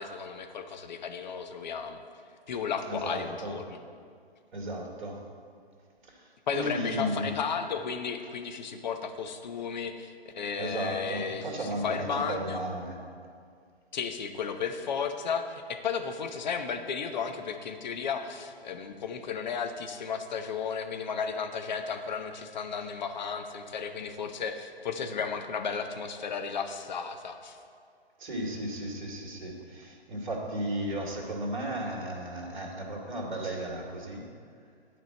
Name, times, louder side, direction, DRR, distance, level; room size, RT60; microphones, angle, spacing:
voice 1, 0.0-2.0 2.5-3.8 6.5-12.6 13.9-27.6, left 6 dB, 45° left, 6 dB, 0.9 m, -34 dB
voice 2, 2.9-3.5 4.5-5.2 6.0-7.3 10.6-13.0 28.2-34.2, right 1 dB, 50° right, 0 dB, 2.3 m, -35 dB
11.0 x 5.0 x 7.6 m, 2.2 s
figure-of-eight pair, 135°, 32 cm